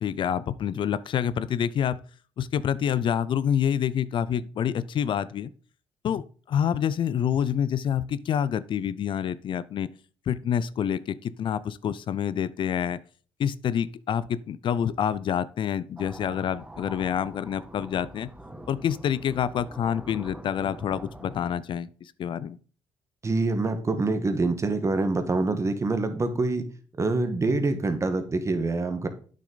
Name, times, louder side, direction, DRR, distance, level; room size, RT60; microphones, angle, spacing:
voice 1, 0.0-2.0 2.4-5.5 6.0-9.9 10.3-13.0 13.4-18.3 18.7-22.6, left 9 dB, 60° left, 0.4 m, -27 dB
sound 1, 16.0-21.5, right 1 dB, 10° right, 2.3 m, -44 dB
voice 2, 23.2-26.6 27.0-29.1, right 3 dB, 30° right, 1.4 m, -25 dB
8.4 x 6.5 x 3.9 m
cardioid pair, 85°, 10 cm